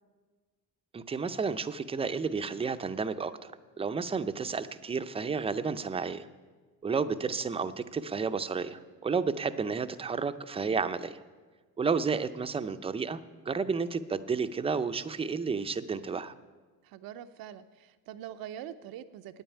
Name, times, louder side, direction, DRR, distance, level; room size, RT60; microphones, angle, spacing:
voice 1, 0.9-3.5 3.8-6.3 6.8-11.2 11.8-13.2 13.5-16.3, right 5 dB, 15° right, 11 dB, 0.5 m, -31 dB
voice 2, 16.8-19.4, right 10 dB, 75° right, 11 dB, 0.6 m, -44 dB
9.4 x 8.9 x 9.7 m, 1.4 s
cardioid pair, 135°, 35 cm